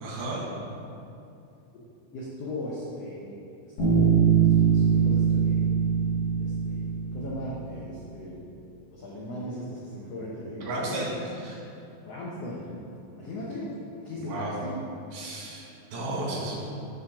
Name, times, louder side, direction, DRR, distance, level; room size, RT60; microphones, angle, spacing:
voice 1, 0.0-0.4 10.6-11.6 14.2-14.6 15.1-16.7, right 1 dB, 90° right, -4 dB, 3.6 m, -33 dB
voice 2, 2.1-3.3 3.6-5.7 6.3-8.4 8.9-11.1 12.1-12.7 13.1-13.7 14.0-14.8, left 1 dB, 80° left, -6 dB, 1.4 m, -37 dB
Bass guitar, 3.8-7.5, right 7 dB, 65° left, 3.3 m, -22 dB
9.3 x 3.8 x 5.9 m, 2.7 s
omnidirectional pair, 4.2 m